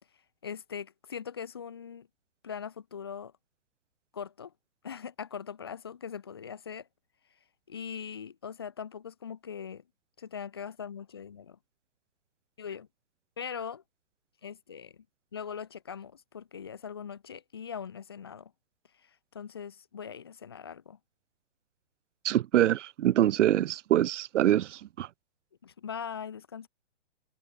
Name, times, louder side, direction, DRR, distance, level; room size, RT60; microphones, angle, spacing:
voice 1, 0.4-2.1 2.4-3.3 4.1-4.5 4.8-6.9 7.7-9.8 10.2-11.6 12.6-12.9 13.4-13.8 14.4-15.0 15.3-18.5 19.0-19.1 19.3-21.0 25.6-26.7, left 7 dB, 20° left, 0.5 m, -41 dB
voice 2, 22.2-25.1, right 12 dB, 85° right, 0.5 m, -25 dB
hypercardioid pair, 170°, 35 cm